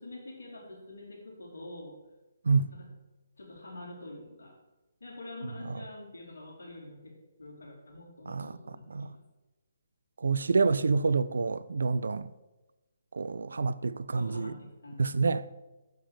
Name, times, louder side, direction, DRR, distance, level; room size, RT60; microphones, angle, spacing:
voice 1, 0.0-2.0 2.7-2.8 3.4-4.6 5.0-9.2 14.1-15.2, left 2 dB, 65° left, 3.0 m, -46 dB
voice 2, 8.3-8.6 8.9-9.1 10.2-12.3 13.1-14.5 15.0-15.4, right 4 dB, 65° right, 0.3 m, -27 dB
6.9 x 5.2 x 6.7 m
figure-of-eight pair, 140°, 0 cm